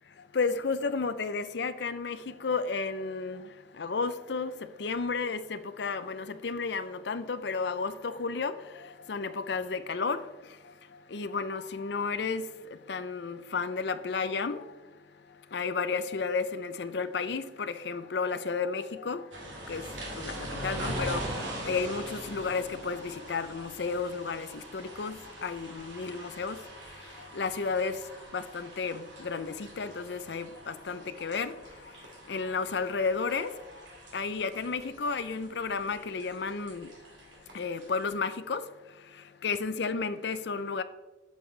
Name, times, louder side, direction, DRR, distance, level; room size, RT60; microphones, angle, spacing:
voice 1, 0.3-3.5 3.8-4.5 4.8-10.2 11.1-12.5 12.9-14.6 15.5-19.2 19.7-21.2 21.6-26.6 27.2-28.0 28.3-31.5 32.3-33.5 34.1-36.9 37.5-38.6 39.4-40.8, left 4 dB, 60° left, 12 dB, 0.5 m, -32 dB
sound 1, 19.3-38.1, right 1 dB, 75° right, 2.3 m, -42 dB
8.3 x 7.9 x 3.2 m, 1.2 s
head